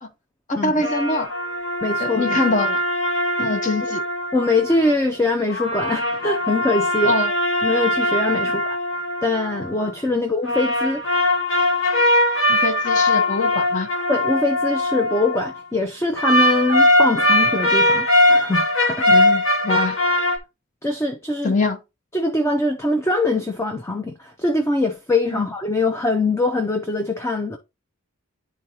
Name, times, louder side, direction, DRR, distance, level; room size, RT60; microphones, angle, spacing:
voice 1, 0.5-1.3 2.0-2.8 3.4-4.0 7.0-7.3 10.1-10.2 12.5-13.9 19.1-20.0 21.4-21.8 25.3-25.4, left 2 dB, 35° left, 0.8 m, -23 dB
sound 1, 0.8-4.9 5.5-9.9 10.4-15.5 16.2-20.4, left 1 dB, 60° left, 1.5 m, -20 dB
voice 2, 1.8-2.4 3.4-3.6 4.3-7.1 7.6-8.8 9.2-11.0 14.1-19.3 20.8-21.5 22.1-27.6, left 2 dB, 10° left, 0.5 m, -23 dB
10.5 x 3.9 x 2.8 m
head